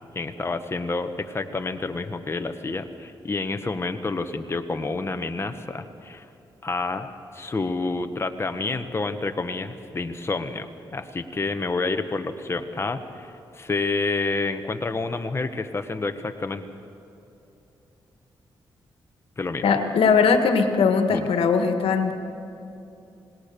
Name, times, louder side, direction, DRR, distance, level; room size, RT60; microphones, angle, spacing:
voice 1, 0.1-6.2 6.6-7.1 7.3-16.7 19.4-19.8 21.1-21.3, left 3 dB, 25° left, 7 dB, 1.2 m, -29 dB
voice 2, 19.6-22.1, left 5 dB, 80° left, 6 dB, 1.7 m, -20 dB
27.0 x 19.5 x 6.9 m, 2.8 s
cardioid pair, 80°, 9 cm